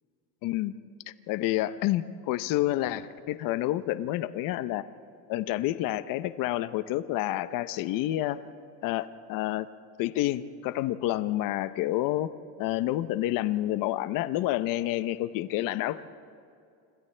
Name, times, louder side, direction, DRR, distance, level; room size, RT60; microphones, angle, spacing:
voice 1, 0.4-0.7 1.1-4.8 5.3-8.4 8.8-9.7 10.0-12.3 12.6-16.1, left 15 dB, 50° left, 13 dB, 0.7 m, -29 dB
29.0 x 27.0 x 3.3 m, 2.4 s
cardioid pair, 145°, 41 cm